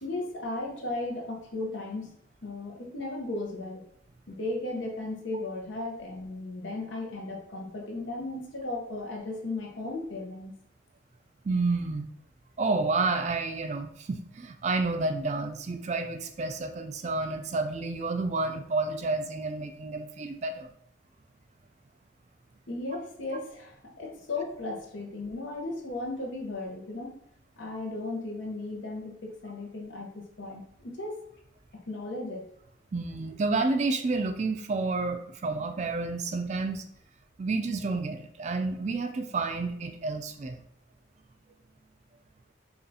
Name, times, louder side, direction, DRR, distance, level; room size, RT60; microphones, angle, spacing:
voice 1, 0.0-2.2 2.4-3.8 4.3-10.5 22.7-27.3 27.6-31.2 31.7-32.5, left 2 dB, 80° left, 0 dB, 0.8 m, -36 dB
voice 2, 11.5-12.1 12.6-20.7 32.9-36.8 37.4-40.6, right 3 dB, 35° right, 7 dB, 0.3 m, -30 dB
5.2 x 2.4 x 2.7 m, 0.67 s
head